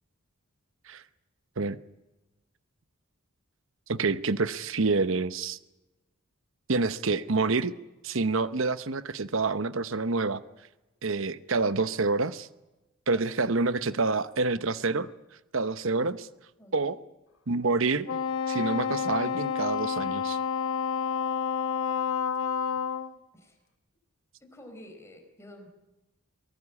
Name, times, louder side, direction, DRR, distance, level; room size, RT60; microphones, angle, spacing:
voice 1, 3.9-5.6 6.7-7.7 8.0-10.4 11.0-12.5 13.1-15.1 15.5-16.3 16.7-17.0 17.5-18.1 18.5-20.4, right 3 dB, 60° right, 14 dB, 0.9 m, -27 dB
voice 2, 13.1-13.5 16.6-16.9 23.3-23.6 24.4-25.7, left 1 dB, 10° left, 4 dB, 4.6 m, -49 dB
Wind instrument woodwind instrument, 18.1-23.1, left 7 dB, 65° left, 1.3 m, -29 dB
24.0 x 18.5 x 8.5 m, 1.0 s
head